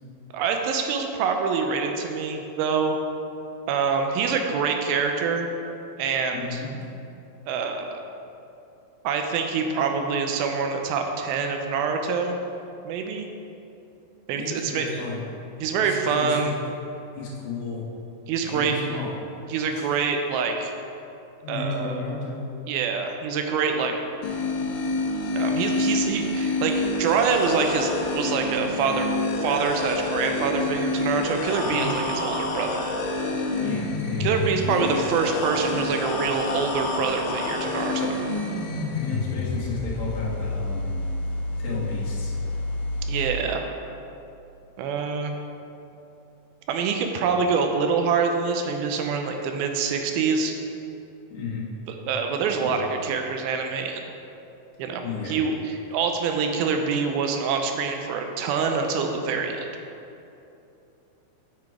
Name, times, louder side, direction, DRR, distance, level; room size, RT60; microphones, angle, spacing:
voice 1, 0.3-3.0 3.7-5.5 6.0-6.6 7.5-8.0 9.0-12.4 12.8-13.3 14.3-15.0 15.6-16.6 18.3-18.8 19.5-20.7 21.5-22.0 22.7-23.9 25.4-32.9 34.2-38.2 43.1-43.7 44.8-45.3 46.7-50.5 52.1-54.0 54.8-59.7, right 5 dB, 85° right, 4 dB, 2.4 m, -25 dB
voice 2, 6.3-6.7 14.3-15.2 15.8-16.4 17.1-17.8 18.4-19.1 19.7-19.9 21.4-22.5 31.6-32.0 33.6-34.3 39.0-41.0 41.6-42.3 51.3-51.7 52.6-52.8 55.0-55.4, left 4 dB, 60° left, -6 dB, 2.3 m, -33 dB
sound 1, 24.2-43.3, left 2 dB, 75° left, 1.9 m, -28 dB
6.7 x 5.9 x 4.7 m, 2.8 s
omnidirectional pair, 4.3 m